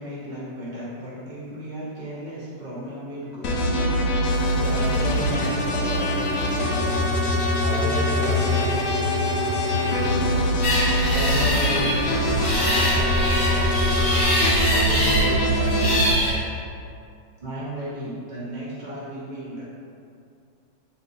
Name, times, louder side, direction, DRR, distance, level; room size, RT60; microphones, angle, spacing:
voice 1, 0.0-3.6 17.4-19.6, right 1 dB, 30° right, -9 dB, 1.0 m, -35 dB
sound 1, 3.4-16.1, left 1 dB, 70° left, 0.9 m, -23 dB
sound 2, 4.2-14.8, left 2 dB, 90° left, 1.6 m, -40 dB
voice 2, 4.5-7.2 7.5-16.4, right 1 dB, 65° right, -8 dB, 0.8 m, -33 dB
sound 3, 10.6-16.3, equal, 45° left, 0.4 m, -24 dB
5.7 x 3.0 x 2.7 m, 2.4 s
omnidirectional pair, 2.2 m